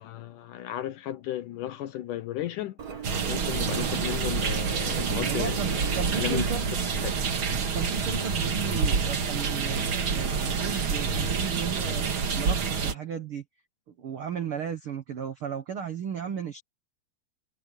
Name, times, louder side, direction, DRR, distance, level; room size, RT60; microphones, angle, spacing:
voice 1, 0.0-6.5 7.0-7.1, left 13 dB, 70° left, 2.1 m, -35 dB
Engine, 2.8-8.3, right 6 dB, 60° right, 0.9 m, -39 dB
sound 1, 3.0-12.9, right 5 dB, 45° right, 2.0 m, -28 dB
voice 2, 5.2-6.7 7.7-13.4 14.0-16.6, right 7 dB, 85° right, 1.2 m, -35 dB
omnidirectional pair, 4.4 m